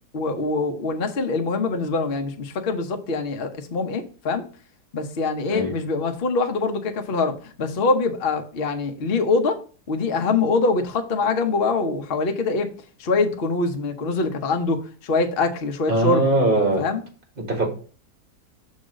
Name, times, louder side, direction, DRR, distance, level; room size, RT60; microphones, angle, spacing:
voice 1, 0.1-4.5 4.9-9.6 9.9-12.7 13.0-16.3 16.8-17.0, left 3 dB, 45° left, 0.8 m, -24 dB
voice 2, 15.9-16.9 17.4-17.7, right 2 dB, 35° right, 1.6 m, -21 dB
6.1 x 3.9 x 6.2 m
omnidirectional pair, 1.8 m